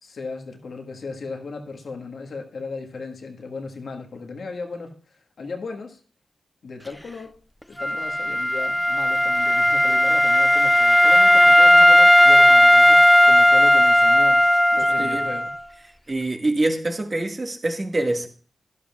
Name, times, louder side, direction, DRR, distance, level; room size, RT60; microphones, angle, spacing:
voice 1, 0.0-6.0 6.6-7.4 7.7-14.4 14.7-15.5, left 4 dB, 75° left, 1.5 m, -36 dB
Wind instrument woodwind instrument, 7.8-15.5, equal, 5° left, 0.5 m, -15 dB
voice 2, 15.0-15.3 16.1-18.3, right 2 dB, 40° right, 1.8 m, -25 dB
12.5 x 11.5 x 2.4 m
cardioid pair, 50°, 0 cm